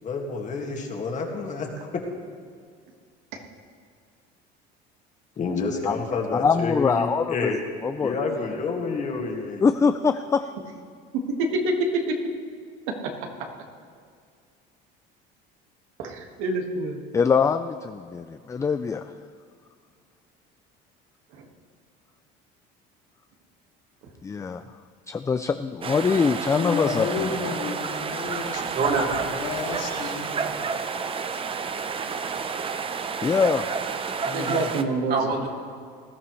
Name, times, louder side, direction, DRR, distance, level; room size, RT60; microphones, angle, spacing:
voice 1, 0.0-2.1 5.4-7.6 8.0-9.6, left 4 dB, 35° left, 1 dB, 2.0 m, -29 dB
voice 2, 6.3-7.5 7.8-8.2 9.6-10.5 17.1-19.1 24.2-24.6 25.1-27.6 33.2-33.7 34.3-34.7, left 5 dB, 15° left, 10 dB, 0.3 m, -23 dB
voice 3, 11.6-12.0 16.0-17.0 21.4-21.5 34.3-35.2, right 2 dB, 80° right, 2 dB, 1.8 m, -27 dB
sound 1, 25.8-34.8, right 5 dB, 25° right, 0.7 m, -30 dB
voice 4, 26.5-28.6 29.4-30.4, left 5 dB, 70° left, 0 dB, 2.5 m, -31 dB
voice 5, 28.7-29.4 29.8-30.2 35.1-35.5, right 4 dB, 50° right, 0 dB, 2.7 m, -26 dB
20.0 x 12.5 x 3.2 m, 2.1 s
cardioid pair, 125°, 21 cm